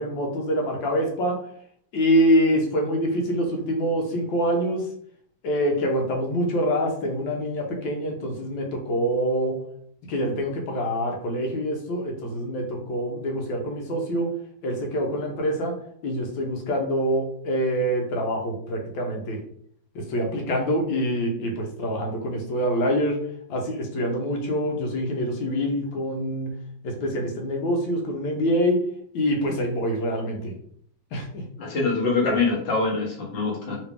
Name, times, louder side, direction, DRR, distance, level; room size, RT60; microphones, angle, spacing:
voice 1, 0.0-1.4 1.9-4.9 5.4-9.6 10.1-14.3 14.6-15.7 16.0-19.4 19.9-23.2 23.5-26.5 26.8-28.8 29.1-30.5 31.1-31.4, equal, 80° left, 1 dB, 1.5 m, -25 dB
voice 2, 31.6-33.8, left 3 dB, 40° left, -2 dB, 0.9 m, -24 dB
3.3 x 3.1 x 3.3 m, 0.65 s
omnidirectional pair, 2.1 m